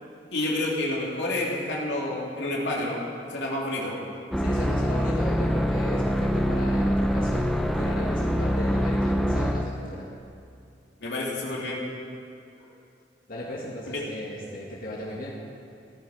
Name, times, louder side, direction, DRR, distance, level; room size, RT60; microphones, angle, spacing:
voice 1, 0.3-3.0 3.3-4.0 11.0-11.8 13.9-14.0, left 1 dB, 85° left, -4 dB, 3.1 m, -29 dB
sound 1, 4.3-9.8, equal, ahead, 0.7 m, -24 dB
voice 2, 4.4-10.1 13.3-15.3, left 1 dB, 55° left, -5 dB, 2.3 m, -36 dB
16.0 x 14.0 x 5.1 m, 2.5 s
head